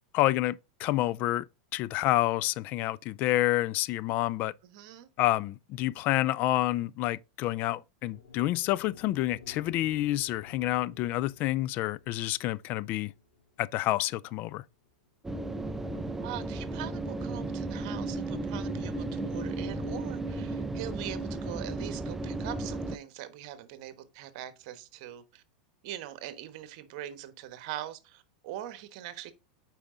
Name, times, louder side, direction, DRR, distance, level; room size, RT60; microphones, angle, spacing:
voice 1, 0.1-1.4 1.7-4.5 5.2-13.1 13.6-14.6, left 16 dB, 45° left, 0.3 m, -28 dB
voice 2, 4.6-5.1 16.2-25.4 25.8-29.3, right 12 dB, 60° right, 1.2 m, -42 dB
sound 1, 8.1-16.3, left 4 dB, 75° left, 2.7 m, -54 dB
sound 2, 15.2-23.0, right 2 dB, 10° right, 0.5 m, -34 dB
8.7 x 4.8 x 3.7 m
hypercardioid pair, 120°, 4 cm